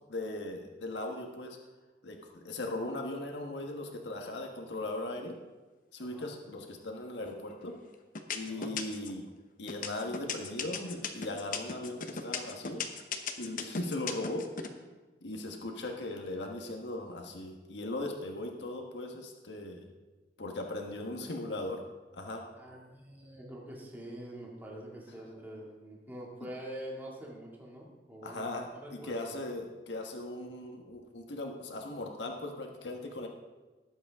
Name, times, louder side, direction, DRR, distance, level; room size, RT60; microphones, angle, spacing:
voice 1, 0.1-1.6 2.0-5.4 5.9-7.7 8.3-9.2 9.6-12.8 13.4-14.5 15.2-19.8 20.4-21.8 22.1-22.4 28.2-33.3, left 2 dB, 85° left, 2 dB, 1.4 m, -38 dB
voice 2, 6.0-6.3 8.5-8.7 20.9-21.3 22.6-29.3, right 1 dB, 10° right, -3 dB, 2.3 m, -45 dB
sound 1, 7.2-7.7 8.2-9.2 9.7-14.7, left 6 dB, 50° left, 0.9 m, -36 dB
19.5 x 8.2 x 3.6 m, 1.2 s
head